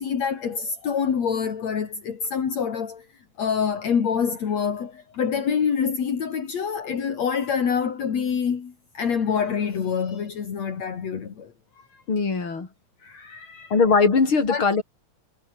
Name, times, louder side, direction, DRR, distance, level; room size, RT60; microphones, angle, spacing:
voice 1, 0.0-3.1 3.4-12.0 13.0-13.7 14.5-14.6, left 7 dB, 65° left, 3.9 m, -26 dB
voice 2, 12.1-12.7 13.7-14.8, left 4 dB, 45° left, 5.1 m, -20 dB
omnidirectional pair, 3.3 m